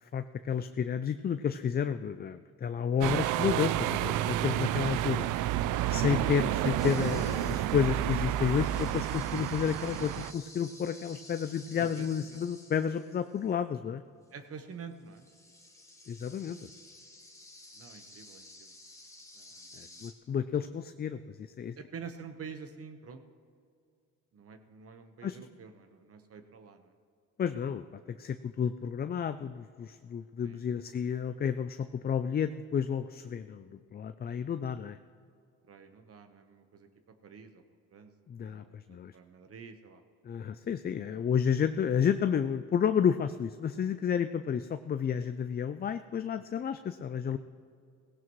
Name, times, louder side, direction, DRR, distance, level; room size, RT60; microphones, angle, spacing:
voice 1, 0.0-5.3 5.9-14.0 16.1-16.7 19.8-21.8 25.2-25.4 27.4-35.0 38.3-39.1 40.2-47.4, left 7 dB, 35° left, 10 dB, 0.4 m, -31 dB
sound 1, 3.0-10.3, right 13 dB, 85° right, 0.5 m, -30 dB
sound 2, 6.8-13.5 14.6-14.7 14.9-20.1, left 2 dB, 10° left, 1.6 m, -52 dB
voice 2, 11.8-12.4 14.3-15.3 17.7-18.7 19.3-20.0 21.8-23.2 24.3-26.9 30.4-30.8 35.7-36.9 37.2-37.6 37.9-38.1 38.4-40.0, right 6 dB, 50° right, 7 dB, 1.2 m, -48 dB
17.0 x 16.5 x 3.1 m, 2.4 s
cardioid pair, 90°, 30 cm